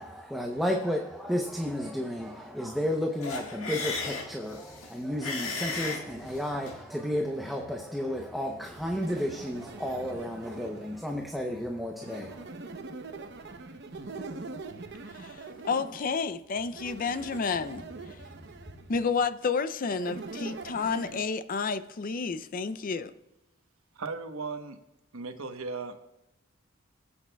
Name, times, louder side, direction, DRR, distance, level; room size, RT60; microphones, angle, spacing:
voice 1, 0.0-12.5, equal, ahead, 0.7 m, -32 dB
sound 1, 3.2-6.8, left 4 dB, 85° left, 1.6 m, -36 dB
Thunder, 8.5-19.2, equal, 25° right, 2.8 m, -57 dB
sound 2, 8.9-11.1 12.0-16.2 16.7-18.9 20.0-21.2, right 3 dB, 55° right, 0.8 m, -43 dB
voice 2, 15.1-18.2 18.9-23.1, left 5 dB, 40° left, 0.4 m, -31 dB
voice 3, 23.9-24.8 25.1-26.0, right 4 dB, 85° right, 1.0 m, -36 dB
21.5 x 8.4 x 2.3 m
head